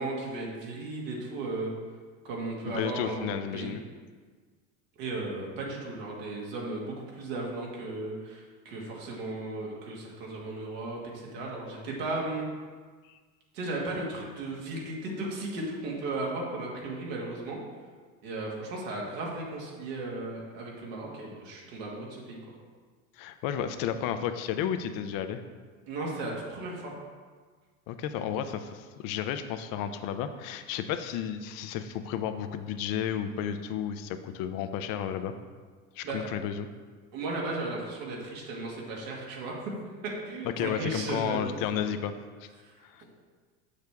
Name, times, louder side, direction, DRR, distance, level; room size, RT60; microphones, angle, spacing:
voice 1, 0.0-1.7 2.2-3.7 5.0-12.5 13.5-17.6 18.2-22.4 25.9-26.9 36.0-36.2 37.1-39.7 40.2-41.9 42.6-42.7 43.0-43.1, right 2 dB, 75° right, -3 dB, 2.0 m, -35 dB
voice 2, 2.7-3.8 13.1-13.2 23.2-25.4 27.9-35.3 36.0-36.7 40.6-42.1 42.4-42.5 42.8-43.0, left 9 dB, 55° left, 9 dB, 0.7 m, -32 dB
6.6 x 6.5 x 3.5 m, 1.5 s
supercardioid pair, 100°, 41 cm